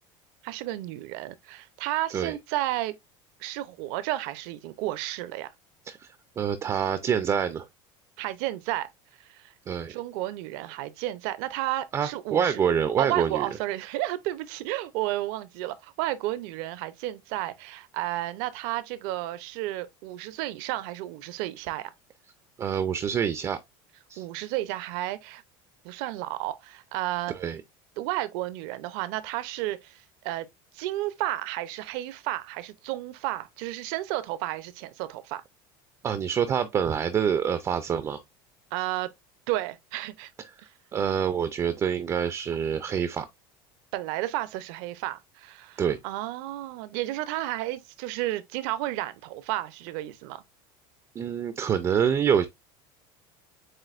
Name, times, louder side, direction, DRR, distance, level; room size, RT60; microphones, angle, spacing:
voice 1, 0.4-3.0 3.4-5.5 8.2-8.9 9.2-9.5 9.9-12.6 13.0-21.9 24.2-25.4 25.8-27.3 28.0-30.5 30.7-35.4 38.7-39.1 39.5-40.3 43.9-50.4, right 15 dB, 70° right, 0.6 m, -32 dB
voice 2, 6.4-7.7 9.7-9.9 11.9-13.5 22.6-23.6 24.1-24.2 27.3-27.6 36.0-38.2 40.9-43.3 45.8-46.0 51.2-52.5, right 8 dB, 25° right, 0.4 m, -26 dB
7.5 x 2.6 x 2.5 m
cardioid pair, 145°, 12 cm